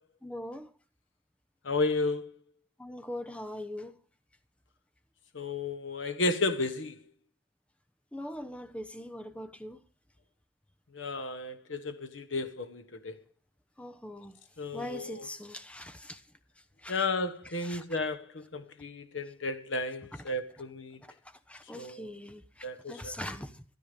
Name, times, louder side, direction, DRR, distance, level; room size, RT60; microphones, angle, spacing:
voice 1, 0.2-0.7 2.8-3.9 8.1-9.8 13.8-14.4 14.7-16.2 16.8-17.1 17.6-17.8 21.5-23.6, left 1 dB, 5° left, 0.7 m, -41 dB
voice 2, 1.6-2.3 5.3-7.0 10.9-13.1 14.6-15.3 16.9-21.0 21.7-22.1 22.6-23.1, left 3 dB, 75° left, 1.0 m, -33 dB
13.5 x 11.5 x 5.1 m
head